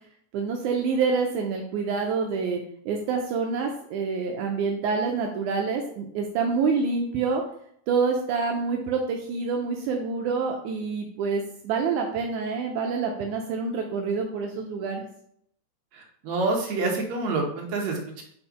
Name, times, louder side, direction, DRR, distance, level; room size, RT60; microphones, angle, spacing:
voice 1, 0.3-7.4 7.9-15.1, right 5 dB, 80° right, 1 dB, 2.1 m, -27 dB
voice 2, 15.9-18.2, right 3 dB, 65° right, 0 dB, 2.3 m, -27 dB
5.1 x 4.4 x 5.0 m, 0.67 s
omnidirectional pair, 3.5 m